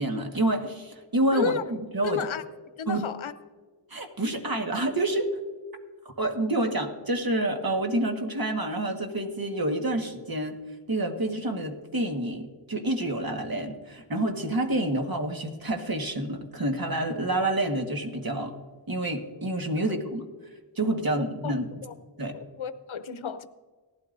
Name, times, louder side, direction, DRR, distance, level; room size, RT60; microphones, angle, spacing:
voice 1, 0.0-1.6 1.9-2.2 2.9-3.0 3.9-5.3 6.2-10.6 10.9-18.5 18.9-20.2 20.8-21.7 22.2-22.4, right 1 dB, 45° right, 1.6 m, -28 dB
voice 2, 1.3-1.6 2.0-2.4 2.8-3.3 19.8-19.9 21.4-21.5 21.8-21.9 22.3-23.5, left 7 dB, 75° left, 0.8 m, -32 dB
18.0 x 12.5 x 2.6 m
wide cardioid pair, 60°, 48 cm